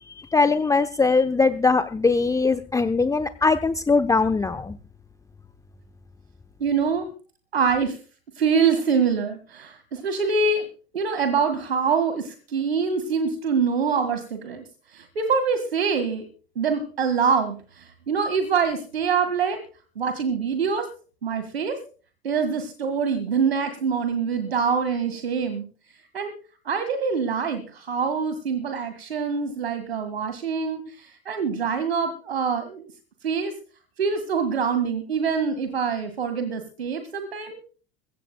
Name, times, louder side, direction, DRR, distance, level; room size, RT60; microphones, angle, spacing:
voice 1, 0.3-4.8, left 4 dB, 10° left, 10 dB, 0.8 m, -21 dB
voice 2, 6.6-7.1 7.5-8.0 8.4-10.7 10.9-14.6 14.9-16.3 16.6-19.6 20.0-20.9 21.2-21.8 22.2-25.6 26.1-26.3 26.7-32.9 33.2-33.5 34.0-37.6, right 5 dB, 75° right, 8 dB, 1.9 m, -25 dB
22.5 x 16.5 x 2.2 m, 0.39 s
figure-of-eight pair, 70°, 31 cm